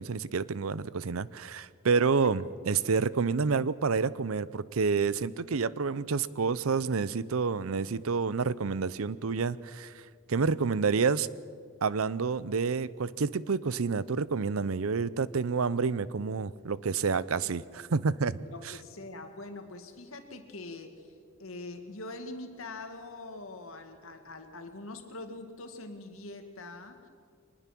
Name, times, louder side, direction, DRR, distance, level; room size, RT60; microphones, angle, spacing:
voice 1, 0.0-9.9 10.3-11.3 11.8-18.4 18.6-18.7, right 5 dB, 85° right, 19 dB, 0.6 m, -29 dB
voice 2, 18.5-21.1 21.4-27.1, left 2 dB, 75° left, 6 dB, 2.2 m, -43 dB
24.0 x 20.0 x 6.1 m, 2.1 s
head